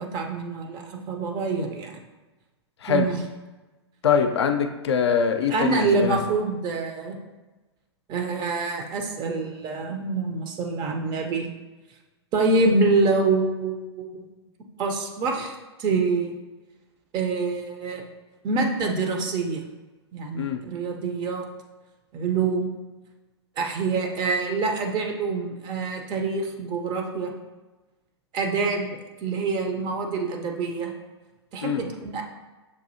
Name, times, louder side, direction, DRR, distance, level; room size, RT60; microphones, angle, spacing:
voice 1, 0.0-2.0 2.9-3.2 5.5-7.2 8.1-11.5 12.3-14.3 14.8-16.3 17.1-18.0 18.4-19.6 20.1-21.5 22.1-22.7 23.6-27.3 28.3-30.9 31.5-32.2, right 3 dB, 30° right, 3 dB, 0.6 m, -26 dB
voice 2, 4.0-6.2 20.3-20.6 31.6-31.8, left 7 dB, 70° left, 6 dB, 0.4 m, -23 dB
6.4 x 2.6 x 2.6 m, 1.2 s
figure-of-eight pair, 105°, 15 cm